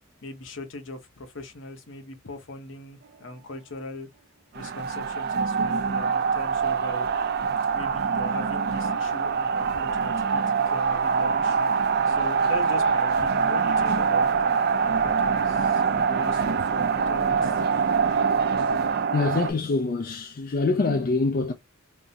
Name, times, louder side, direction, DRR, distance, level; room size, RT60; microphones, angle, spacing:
voice 1, 0.2-4.1 4.5-7.1 7.7-17.6, left 1 dB, 65° left, 0.8 m, -40 dB
sound 1, 4.5-19.5, right 5 dB, 50° right, 0.4 m, -24 dB
voice 2, 19.1-21.5, left 3 dB, 45° left, 0.4 m, -25 dB
3.5 x 2.0 x 2.6 m
head